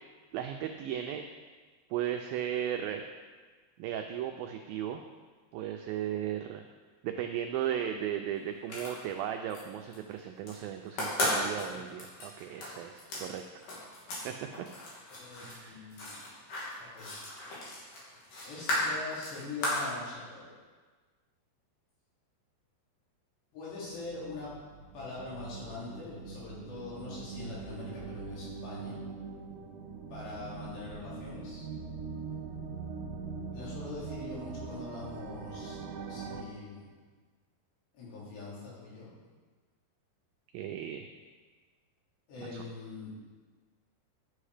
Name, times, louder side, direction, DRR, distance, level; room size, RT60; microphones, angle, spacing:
voice 1, 0.3-1.2 1.9-3.0 3.8-5.0 5.5-6.6 7.0-13.4 14.2-14.3 15.4-15.9 40.5-41.1 42.4-42.6, right 10 dB, 85° right, 5 dB, 2.0 m, -36 dB
sound 1, 8.6-9.6 9.9-10.6 10.9-14.3 14.5-19.9, left 1 dB, 55° left, 3.8 m, -35 dB
voice 2, 11.5-11.8 15.2-16.2 16.8-17.4 18.5-20.5 23.5-24.5 24.9-29.0 30.1-31.7 33.5-36.9 37.9-39.1 42.3-43.1, left 3 dB, 80° left, -7 dB, 5.4 m, -43 dB
sound 2, 24.0-36.4, right 5 dB, 70° right, 2.2 m, -42 dB
11.0 x 7.9 x 4.9 m, 1.4 s
omnidirectional pair, 4.8 m